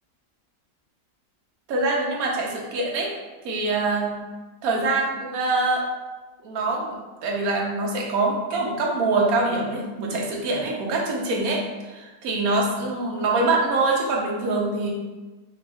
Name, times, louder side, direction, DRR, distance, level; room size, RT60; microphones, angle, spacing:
voice 1, 1.7-3.2 3.4-4.1 4.6-5.8 6.4-14.9, right 3 dB, 70° right, -1 dB, 1.2 m, -24 dB
3.5 x 2.9 x 3.3 m, 1.2 s
omnidirectional pair, 1.6 m